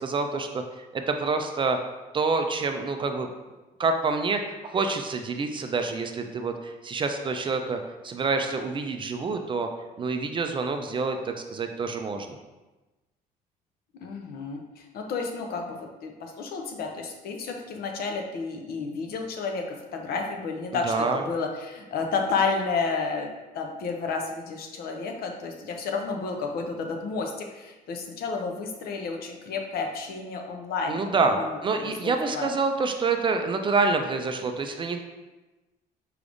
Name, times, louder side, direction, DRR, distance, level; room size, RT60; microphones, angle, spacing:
voice 1, 0.0-1.8 2.1-3.3 3.8-9.7 10.0-12.4 20.8-21.2 30.9-35.0, right 4 dB, 30° right, 5 dB, 0.4 m, -27 dB
voice 2, 14.0-19.6 19.9-23.3 23.5-32.5, left 4 dB, 65° left, 3 dB, 0.7 m, -31 dB
4.7 x 3.4 x 2.5 m, 1.1 s
cardioid pair, 110°, 17 cm